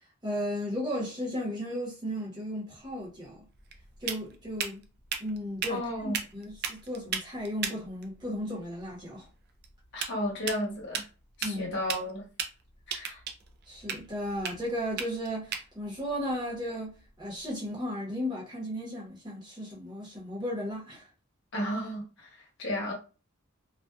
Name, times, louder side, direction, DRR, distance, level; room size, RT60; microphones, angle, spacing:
voice 1, 0.2-3.5 4.0-4.8 5.2-9.3 11.4-11.8 13.7-21.1, equal, 20° right, 0.9 m, -35 dB
sound 1, 2.8-17.5, right 7 dB, 50° right, 0.4 m, -39 dB
voice 2, 5.7-6.2 9.9-11.0 11.4-12.2 12.9-13.2 21.5-22.9, equal, 55° left, 1.0 m, -33 dB
2.4 x 2.2 x 2.3 m
head